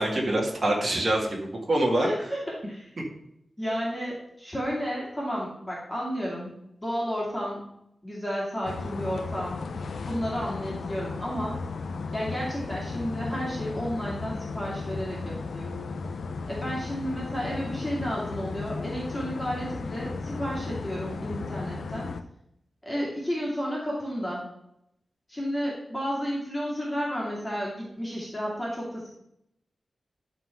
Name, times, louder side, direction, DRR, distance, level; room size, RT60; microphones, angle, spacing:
voice 1, 0.0-2.1, right 1 dB, 35° right, -1 dB, 1.9 m, -25 dB
voice 2, 2.0-2.9 3.6-6.5 6.8-7.6 8.0-9.7 10.0-11.6 12.1-15.7 16.5-22.1 22.9-24.4 25.3-29.1, equal, 10° left, -5 dB, 2.3 m, -32 dB
sound 1, 8.6-22.2, left 4 dB, 75° left, 0.6 m, -35 dB
11.5 x 3.9 x 5.7 m, 0.79 s
wide cardioid pair, 170°, 0 cm